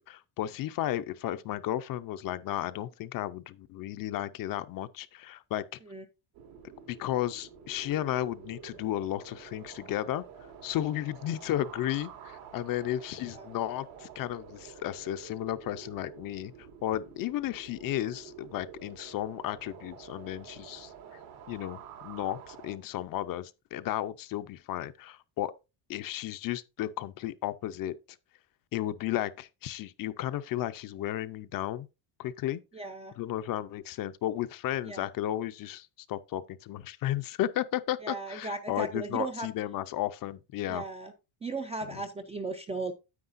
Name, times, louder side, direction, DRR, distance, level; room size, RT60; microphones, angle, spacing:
voice 1, 0.0-5.6 6.9-10.2 10.6-16.5 16.8-21.2 21.5-25.5 25.9-27.9 28.7-31.9 32.2-32.6 33.2-40.8, left 13 dB, 45° left, 0.5 m, -34 dB
sound 1, 6.3-22.8, right 7 dB, 85° right, 2.6 m, -49 dB
voice 2, 32.7-33.1 34.9-35.1 38.0-39.5 40.7-41.1 41.4-42.9, right 3 dB, 15° right, 0.3 m, -36 dB
9.6 x 8.7 x 2.5 m
cardioid pair, 170°, 49 cm